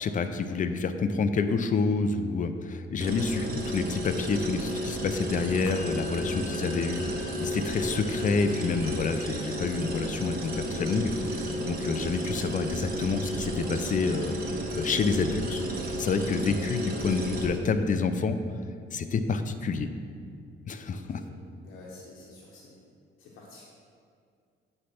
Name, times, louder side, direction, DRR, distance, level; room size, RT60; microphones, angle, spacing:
voice 1, 0.0-11.1 11.6-14.4 14.7-15.6 16.0-18.4 18.9-19.9 20.7-21.2, left 4 dB, 40° left, 9 dB, 0.5 m, -28 dB
sound 1, 3.0-17.5, equal, 50° right, 1.3 m, -33 dB
Musical instrument, 5.7-15.2, left 3 dB, 15° left, 1.3 m, -49 dB
voice 2, 21.6-22.8 23.2-23.6, left 2 dB, 85° left, -4 dB, 1.0 m, -49 dB
8.0 x 3.3 x 5.8 m, 2.2 s
cardioid pair, 90°, 20 cm